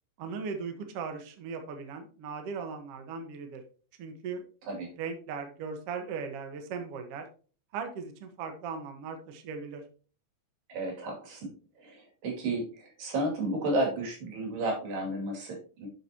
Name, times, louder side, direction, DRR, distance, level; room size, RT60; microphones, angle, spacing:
voice 1, 0.2-3.6 4.0-4.4 5.0-7.2 7.7-9.8, right 5 dB, 85° right, 6 dB, 1.3 m, -38 dB
voice 2, 10.7-11.5 11.8-15.9, right 1 dB, 60° right, 0 dB, 4.1 m, -32 dB
11.0 x 6.7 x 2.9 m, 0.38 s
omnidirectional pair, 4.8 m